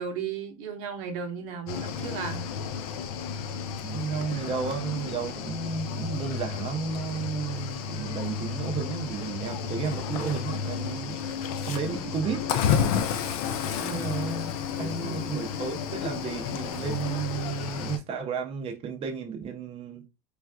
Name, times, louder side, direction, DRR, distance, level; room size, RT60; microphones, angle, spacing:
voice 1, 0.0-2.5 13.7-14.1 14.8-15.3, right 6 dB, 70° right, 0.7 m, -35 dB
Cricket / Waves surf, 1.7-18.0, left 7 dB, 75° left, 0.4 m, -32 dB
voice 2, 3.8-11.2 11.7-12.5 13.9-14.5 14.8-20.1, right 5 dB, 30° right, 0.5 m, -32 dB
3.2 x 2.3 x 2.2 m
hypercardioid pair, 90°, 18 cm